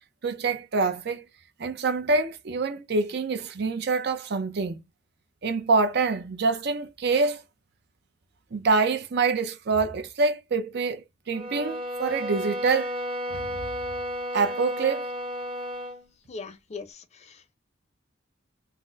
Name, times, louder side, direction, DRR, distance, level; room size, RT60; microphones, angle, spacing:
voice 1, 0.2-1.3 1.6-4.8 5.4-7.4 8.5-12.9 13.3-13.4 14.3-15.1, right 4 dB, 60° right, 0.5 m, -26 dB
sound 1, 11.3-16.0, equal, 25° right, 0.9 m, -33 dB
voice 2, 16.3-17.6, left 4 dB, 35° left, 0.4 m, -41 dB
4.0 x 2.0 x 2.3 m
head